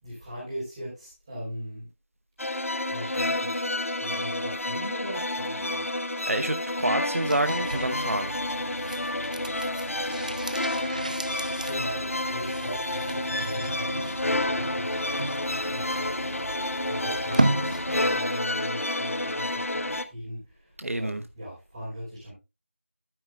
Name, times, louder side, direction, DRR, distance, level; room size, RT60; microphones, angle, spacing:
voice 1, 0.0-1.9 2.9-5.8 11.6-22.3, equal, 15° right, 3.7 m, -39 dB
sound 1, 2.4-20.0, left 1 dB, 80° left, 0.9 m, -30 dB
voice 2, 6.3-8.3 13.2-13.3 20.8-21.2, right 1 dB, 80° right, 0.8 m, -28 dB
sound 2, 7.1-18.3 18.6-18.7, right 1 dB, 35° right, 0.4 m, -34 dB
12.0 x 9.0 x 2.3 m
figure-of-eight pair, 175°, 8 cm